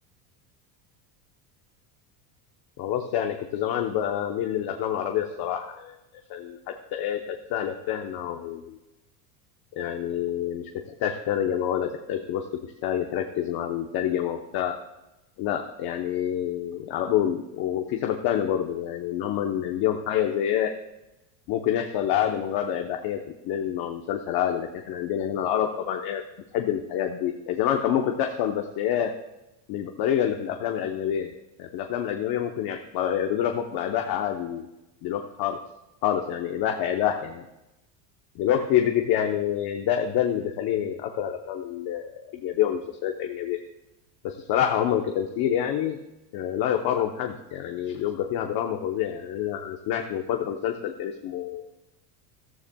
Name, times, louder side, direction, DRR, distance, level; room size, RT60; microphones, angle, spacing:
voice 1, 2.8-6.0 6.3-8.8 9.8-10.7 11.0-12.4 12.8-14.8 15.4-20.7 21.5-26.2 26.5-29.1 29.7-31.3 31.6-34.7 35.0-35.6 36.0-37.4 38.3-43.6 44.2-46.0 46.3-51.6, left 10 dB, 50° left, 4 dB, 1.0 m, -27 dB
14.0 x 13.0 x 2.3 m, 0.96 s
supercardioid pair, 135°, 47 cm